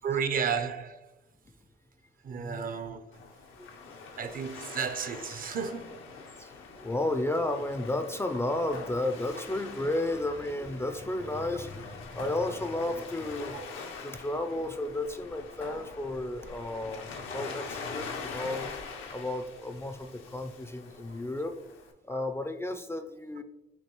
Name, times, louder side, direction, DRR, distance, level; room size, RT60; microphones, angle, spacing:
voice 1, 0.0-1.1 2.2-3.0 4.2-6.0 13.5-13.7 22.1-22.2, right 6 dB, 45° right, 0.5 m, -33 dB
voice 2, 2.3-2.8 3.6-3.7 6.4-13.6 14.0-18.7 19.1-21.5 22.1-23.4, left 1 dB, 15° left, 0.4 m, -33 dB
Waves surf, 3.1-21.9, left 4 dB, 85° left, 0.7 m, -44 dB
sound 1, 8.7-9.8 12.2-13.2 15.6-16.5, left 3 dB, 70° left, 1.1 m, -47 dB
6.4 x 2.7 x 2.9 m
cardioid pair, 90°, 20 cm